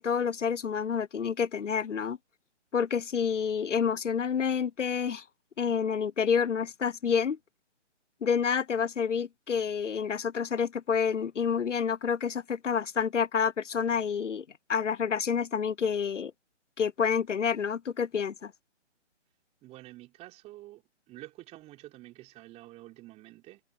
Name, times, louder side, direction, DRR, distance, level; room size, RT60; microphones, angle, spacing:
voice 1, 0.0-2.2 2.7-5.2 5.6-7.4 8.2-14.4 14.7-16.3 16.8-18.5, left 6 dB, 90° left, 0.8 m, -28 dB
voice 2, 19.6-23.6, right 17 dB, 20° right, 4.6 m, -49 dB
hypercardioid pair, 145°, 36 cm